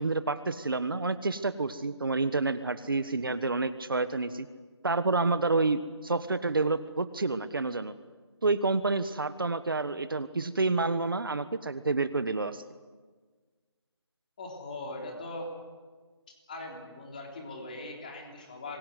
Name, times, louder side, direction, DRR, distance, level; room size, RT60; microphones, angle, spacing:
voice 1, 0.0-4.5 4.8-7.9 8.4-12.6, right 3 dB, 50° right, 12 dB, 1.4 m, -29 dB
voice 2, 14.4-15.5 16.5-18.8, left 2 dB, 15° left, 1 dB, 3.5 m, -40 dB
26.5 x 22.5 x 8.2 m, 1.4 s
figure-of-eight pair, 180°, 15 cm